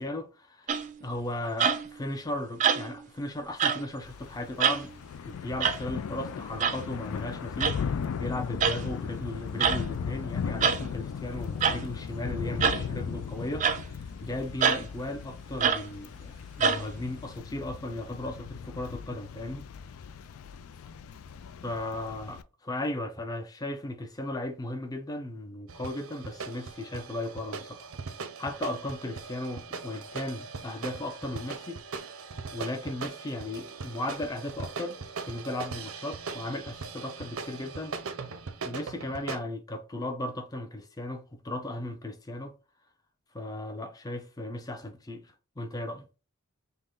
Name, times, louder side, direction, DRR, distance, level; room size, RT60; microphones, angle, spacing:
voice 1, 0.0-4.9 5.2-19.7 21.6-27.9 28.4-32.2 32.5-35.0 35.3-38.0 38.6-42.6 43.3-46.0, left 1 dB, 15° left, 0.6 m, -36 dB
sound 1, 0.7-1.0 1.6-2.0 2.6-3.1 3.6-3.8 4.6-4.9 5.6-5.8 6.6-6.8 7.6-7.8 8.6-8.8 9.6-9.8 10.6-10.8 11.6-11.8 12.6-12.8 13.6-13.8 14.6-14.8 15.6-15.9 16.6-16.8, right 6 dB, 35° right, 0.4 m, -25 dB
Thunder / Rain, 4.0-22.4, left 6 dB, 75° left, 0.4 m, -37 dB
sound 2, 25.7-39.4, right 4 dB, 75° right, 0.6 m, -40 dB
5.3 x 2.1 x 3.7 m
head